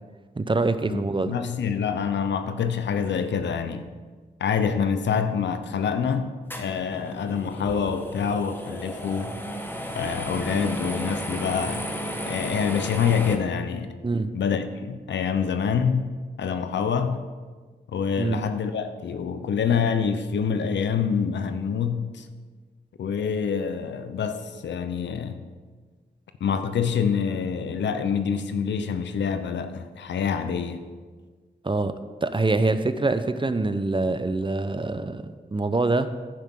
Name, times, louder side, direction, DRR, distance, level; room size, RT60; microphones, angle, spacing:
voice 1, 0.4-1.3 14.0-14.3 18.2-18.4 31.6-31.9 32.2-36.1, right 3 dB, 30° right, 11 dB, 0.7 m, -25 dB
voice 2, 0.9-3.9 4.4-9.4 9.9-11.9 12.3-14.0 14.3-16.1 16.4-17.2 17.9-22.3 23.0-25.4 26.4-30.8, left 6 dB, 85° left, 9 dB, 0.7 m, -26 dB
sound 1, 6.5-13.4, equal, 10° left, 1.5 m, -33 dB
10.5 x 10.0 x 3.8 m, 1.4 s
cardioid pair, 45°, 18 cm